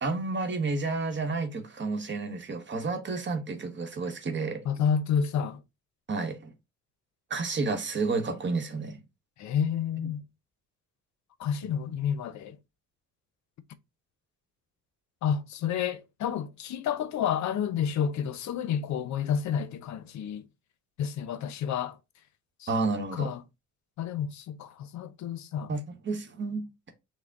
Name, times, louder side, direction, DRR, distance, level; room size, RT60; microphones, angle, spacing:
voice 1, 0.0-4.6 6.1-6.5 7.3-9.0 22.7-23.3 25.7-26.6, right 3 dB, 40° right, 0.9 m, -30 dB
voice 2, 4.6-5.6 9.4-10.2 11.4-12.6 15.2-20.5 21.0-22.0 22.6-22.7 23.1-23.4 24.0-25.7, left 8 dB, 65° left, 0.6 m, -30 dB
6.1 x 2.1 x 3.4 m
cardioid pair, 90°, 30 cm